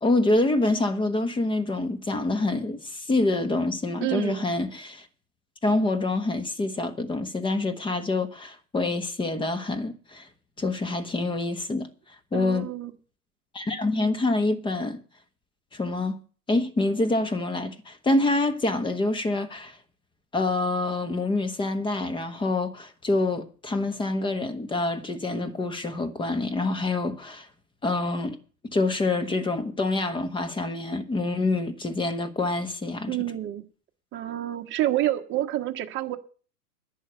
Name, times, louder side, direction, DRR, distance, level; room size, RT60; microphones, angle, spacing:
voice 1, 0.0-5.1 5.6-10.3 10.6-11.9 12.3-12.7 13.5-15.0 15.7-16.2 16.5-19.8 20.3-27.5 27.8-28.4 28.6-33.2, left 2 dB, 10° left, 1.2 m, -26 dB
voice 2, 4.0-4.4 12.3-12.9 33.1-33.6 34.1-36.2, right 14 dB, 25° right, 1.3 m, -28 dB
11.0 x 6.8 x 9.1 m
hypercardioid pair, 110°, 46 cm